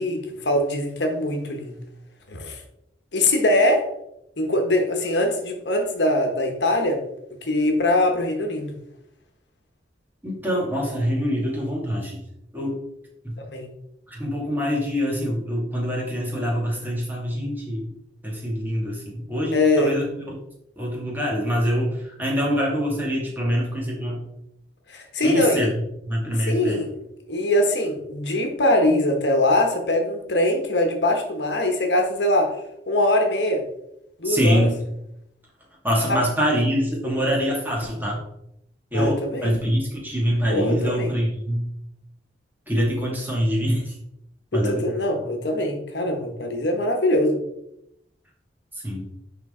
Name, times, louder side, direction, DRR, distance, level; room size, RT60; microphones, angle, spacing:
voice 1, 0.0-1.8 2.3-2.6 3.1-3.9 4.4-7.0 7.4-8.7 13.5-13.7 19.5-20.0 24.9-25.7 26.5-27.0 27.3-32.6 32.9-33.6 34.2-34.7 36.1-36.2 38.9-39.6 40.5-41.1 44.5-47.4, left 1 dB, 70° left, 4 dB, 1.2 m, -22 dB
voice 2, 10.2-12.2 12.5-12.8 13.2-13.4 14.1-17.9 18.2-20.1 20.8-24.2 25.2-26.8 34.2-34.8 35.8-38.2 38.9-41.7 42.7-43.9 44.5-44.8 48.8-49.1, equal, 10° right, -2 dB, 2.1 m, -24 dB
10.5 x 3.8 x 3.7 m, 0.81 s
head